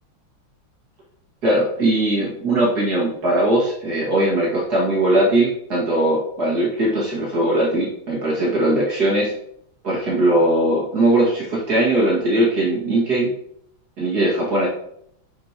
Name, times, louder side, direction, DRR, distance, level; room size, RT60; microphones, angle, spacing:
voice 1, 1.4-9.3 9.8-13.3 14.0-14.7, right 1 dB, 50° right, -5 dB, 2.6 m, -20 dB
7.7 x 6.8 x 2.9 m, 0.71 s
omnidirectional pair, 2.2 m